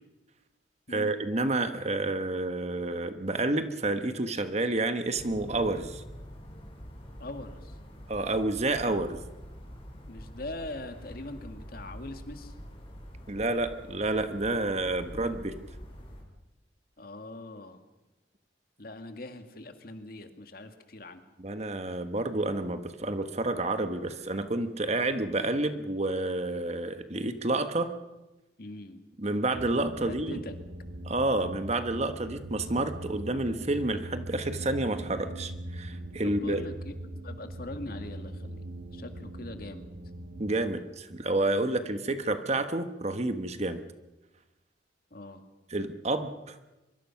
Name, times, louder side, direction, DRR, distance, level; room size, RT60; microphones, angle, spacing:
voice 1, 0.9-6.0 8.1-9.2 13.3-15.6 21.4-27.9 29.2-30.4 31.0-36.6 40.4-43.8 45.7-46.6, right 2 dB, 40° right, 9 dB, 1.4 m, -29 dB
sound 1, 5.2-16.2, equal, 30° left, 5.1 m, -45 dB
voice 2, 7.2-7.7 10.1-12.5 15.1-15.2 17.0-17.8 18.8-21.2 28.6-29.0 30.1-30.5 36.2-36.9 37.2-38.6 38.9-39.9 41.7-41.8 45.1-45.4, left 1 dB, 55° left, 7 dB, 2.1 m, -42 dB
sound 2, 29.5-40.6, right 1 dB, 80° right, 1.8 m, -41 dB
24.0 x 23.0 x 5.9 m, 1.0 s
head